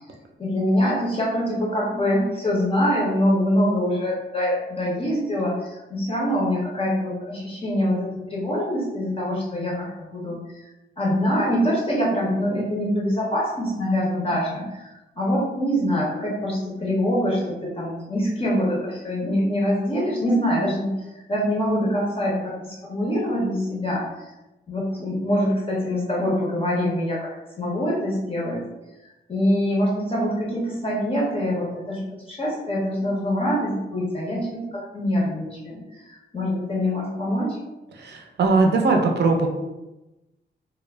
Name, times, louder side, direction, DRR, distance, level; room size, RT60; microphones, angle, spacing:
voice 1, 0.4-10.6 11.0-24.1 24.7-27.3 27.6-28.6 29.3-37.6, equal, 30° left, -5 dB, 0.5 m, -24 dB
voice 2, 38.4-39.5, right 3 dB, 60° right, 2 dB, 0.5 m, -18 dB
2.2 x 2.0 x 3.2 m, 1.0 s
wide cardioid pair, 150°, 20 cm